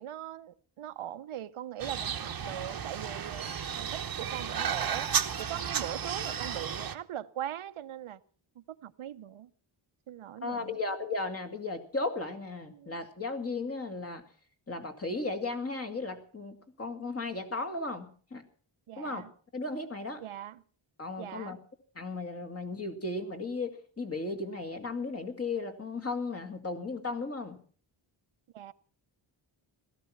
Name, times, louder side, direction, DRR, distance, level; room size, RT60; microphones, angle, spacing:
voice 1, 0.0-5.1 5.4-8.2 8.6-9.5 10.1-10.8 12.7-13.0 18.9-19.3 20.2-20.6 21.2-21.6 28.5-28.7, right 11 dB, 85° right, 0.9 m, -41 dB
sound 1, 1.8-6.9, right 7 dB, 45° right, 1.0 m, -33 dB
voice 2, 10.4-14.2 14.7-18.4 19.0-19.2 19.5-20.2 21.0-21.6 22.0-27.6, left 3 dB, 30° left, 2.3 m, -35 dB
17.0 x 13.5 x 5.9 m
wide cardioid pair, 160°, 49 cm